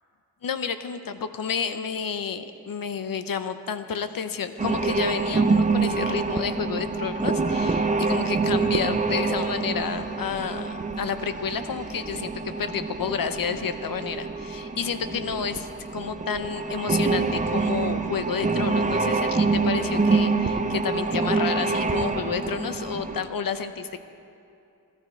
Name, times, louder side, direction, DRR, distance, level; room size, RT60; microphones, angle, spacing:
voice 1, 0.4-1.0 1.4-15.7 15.9-24.0, left 6 dB, 65° left, 10 dB, 0.7 m, -30 dB
sound 1, 4.6-23.2, right 4 dB, 20° right, 0.7 m, -26 dB
16.5 x 13.5 x 4.4 m, 2.7 s
wide cardioid pair, 110°, 37 cm